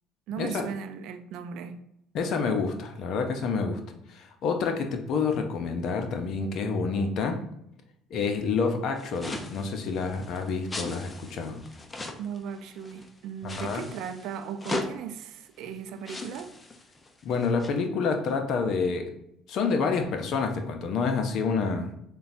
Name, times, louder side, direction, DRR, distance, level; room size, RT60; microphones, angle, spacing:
voice 1, 0.3-1.8 12.2-16.5, right 7 dB, 65° right, 8 dB, 0.5 m, -37 dB
voice 2, 2.1-3.8 4.1-7.4 8.1-11.6 13.4-13.9 17.2-19.1 19.5-21.9, left 4 dB, 60° left, 5 dB, 0.6 m, -28 dB
sound 1, 9.0-13.1 13.5-14.9 15.6-15.7 16.0-17.7, left 2 dB, 25° left, 0.7 m, -38 dB
6.8 x 2.3 x 2.7 m, 0.78 s
hypercardioid pair, 60°, 0 cm